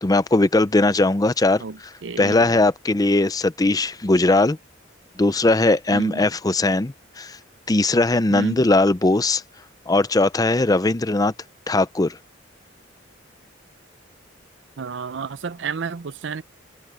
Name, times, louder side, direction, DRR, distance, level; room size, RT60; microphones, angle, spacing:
voice 1, 0.0-1.6 2.2-4.6 5.2-7.4 7.7-9.4 9.9-11.3 11.7-12.2, left 2 dB, 20° left, 0.5 m, -19 dB
voice 2, 1.6-2.5 5.9-6.3 8.3-8.6 14.8-16.4, right 4 dB, 65° right, 0.6 m, -31 dB
head